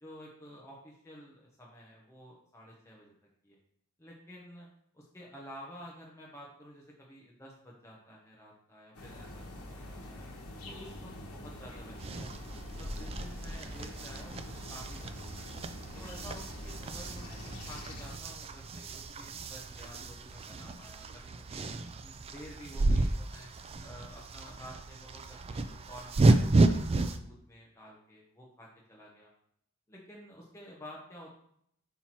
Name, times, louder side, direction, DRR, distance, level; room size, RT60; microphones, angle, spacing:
voice 1, 0.0-3.1 3.4-3.6 4.0-4.7 4.9-9.4 9.7-10.3 10.6-15.5 15.9-17.4 17.7-21.6 22.0-23.5 23.8-29.3 29.9-31.3, equal, 15° left, -4 dB, 0.9 m, -51 dB
sound 1, 8.9-18.2, left 1 dB, 75° left, 1.2 m, -44 dB
sound 2, 11.9-27.2, right 2 dB, 25° right, 0.3 m, -32 dB
5.7 x 4.3 x 4.4 m, 0.70 s
head